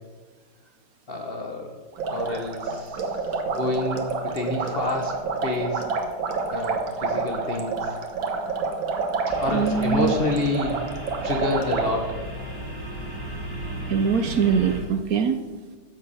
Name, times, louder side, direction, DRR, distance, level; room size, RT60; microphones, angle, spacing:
voice 1, 1.1-1.8 2.1-3.2 3.4-5.8 6.5-8.0 9.3-10.8 11.2-12.2, left 2 dB, 40° left, 2 dB, 0.9 m, -28 dB
sound 1, 1.9-11.9, right 4 dB, 65° right, 2.0 m, -28 dB
sound 2, 9.3-14.8, right 1 dB, 10° left, 2.6 m, -35 dB
voice 2, 9.5-10.1 13.9-15.4, right 6 dB, 90° right, 8 dB, 0.7 m, -22 dB
14.0 x 8.7 x 5.5 m, 1.4 s
omnidirectional pair, 2.4 m